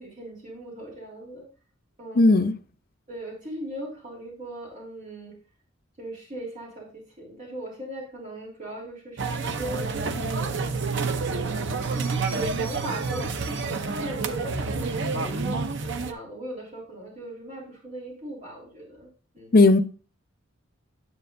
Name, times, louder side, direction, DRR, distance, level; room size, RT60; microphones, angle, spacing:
voice 1, 0.0-1.5 2.0-2.5 3.1-5.3 6.0-10.7 11.3-19.1 19.3-19.6, right 1 dB, 40° right, -3 dB, 3.2 m, -39 dB
voice 2, 2.2-2.5 19.5-19.8, left 2 dB, 50° left, 8 dB, 0.6 m, -16 dB
sound 1, 9.2-16.1, right 4 dB, 60° right, 0.7 m, -28 dB
9.8 x 7.7 x 2.6 m, 0.38 s
head